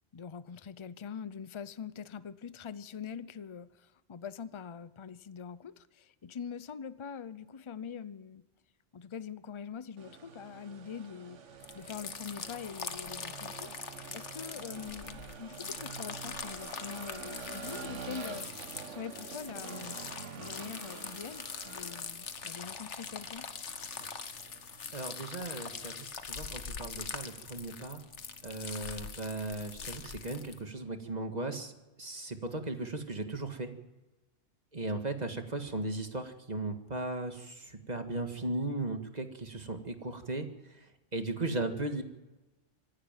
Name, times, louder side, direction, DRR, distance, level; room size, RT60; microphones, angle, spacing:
voice 1, 0.1-8.4 8.9-11.4 11.7-20.0 20.4-23.5, left 7 dB, 30° left, 16 dB, 0.6 m, -44 dB
sound 1, 10.0-29.8, right 6 dB, 80° right, 1.5 m, -48 dB
sound 2, 11.6-30.6, left 6 dB, 70° left, 1.5 m, -43 dB
voice 2, 24.9-28.0 28.4-31.7 32.0-33.7 34.7-42.0, right 2 dB, 35° right, 6 dB, 2.0 m, -37 dB
25.5 x 11.5 x 9.1 m, 1.1 s
omnidirectional pair, 1.2 m